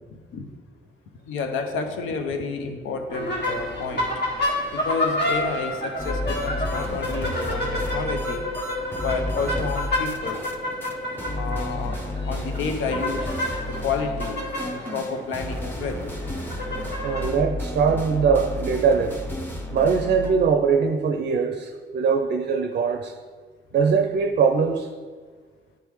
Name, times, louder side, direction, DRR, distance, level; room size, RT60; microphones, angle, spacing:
voice 1, 0.1-0.5 1.3-4.1 4.7-8.5 9.0-10.4 11.4-12.0 12.3-13.3 13.7-14.4 14.6-16.3, left 4 dB, 80° left, 5 dB, 0.7 m, -30 dB
sound 1, 3.1-17.3, left 1 dB, 55° left, 1.9 m, -29 dB
sound 2, 6.0-10.6 10.8-10.9 11.2-20.5, left 1 dB, 10° left, 0.7 m, -32 dB
voice 2, 17.0-19.2 19.7-23.1 23.7-24.9, right 6 dB, 50° right, 7 dB, 0.5 m, -22 dB
10.0 x 3.4 x 3.1 m, 1.5 s
cardioid pair, 90°, 20 cm